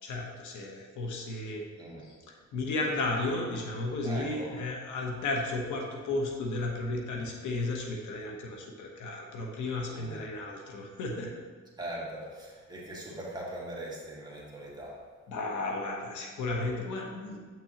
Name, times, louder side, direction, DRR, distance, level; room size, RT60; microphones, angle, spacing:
voice 1, 0.0-1.7 2.0-11.4 15.3-17.5, left 2 dB, 75° left, 1 dB, 1.1 m, -34 dB
voice 2, 4.0-4.5 9.9-10.2 11.8-15.0, right 1 dB, 15° right, -5 dB, 1.9 m, -41 dB
7.7 x 6.0 x 2.9 m, 1.5 s
cardioid pair, 90°, 30 cm